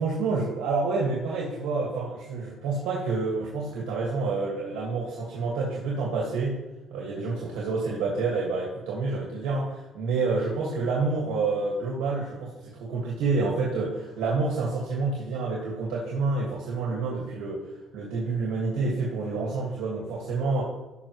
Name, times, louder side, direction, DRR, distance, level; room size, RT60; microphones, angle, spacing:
voice 1, 0.0-6.6 6.9-20.6, right 3 dB, 90° right, -3 dB, 1.8 m, -28 dB
14.5 x 6.0 x 3.1 m, 1.0 s
cardioid pair, 105°, 0 cm